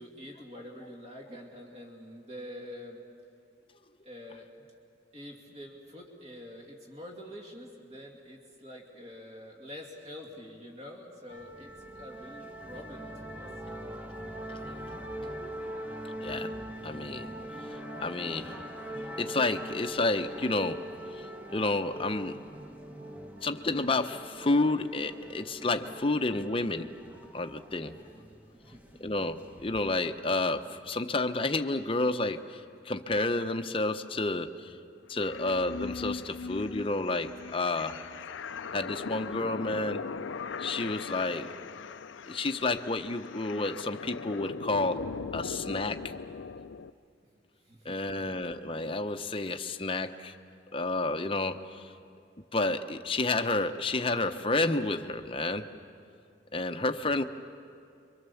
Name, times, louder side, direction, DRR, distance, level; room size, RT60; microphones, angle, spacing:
voice 1, 0.0-3.0 4.0-4.7 5.1-13.5 27.9-29.0 42.1-42.3 47.6-48.3, left 1 dB, 35° right, 0 dB, 2.6 m, -46 dB
sound 1, 11.3-30.0, right 1 dB, 10° right, 1.2 m, -42 dB
voice 2, 16.2-16.5 16.8-17.3 17.6-18.6 18.9-20.9 21.2-22.4 23.4-26.9 27.3-28.0 29.0-34.8 35.1-38.0 38.7-40.0 40.6-41.5 42.3-45.1 45.3-46.0 47.8-50.3 50.7-51.9 52.5-55.7 56.5-57.2, left 2 dB, 30° left, 8 dB, 0.8 m, -30 dB
sound 2, 35.2-46.9, left 5 dB, 80° left, 0.5 m, -39 dB
29.0 x 24.5 x 7.1 m, 2.4 s
head